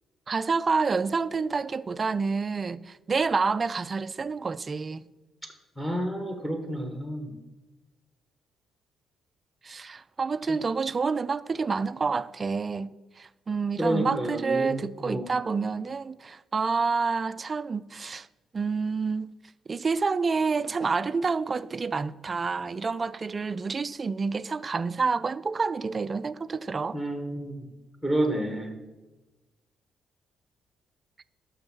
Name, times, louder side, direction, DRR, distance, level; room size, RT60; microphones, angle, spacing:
voice 1, 0.3-5.1 9.6-18.3 18.5-19.3 19.7-27.0, right 4 dB, 25° right, 0.3 m, -28 dB
voice 2, 5.8-7.3 10.5-10.6 13.8-15.3 26.9-27.7 28.0-28.8, right 1 dB, 5° left, 1.1 m, -30 dB
10.5 x 6.4 x 6.1 m
cardioid pair, 155°, 0 cm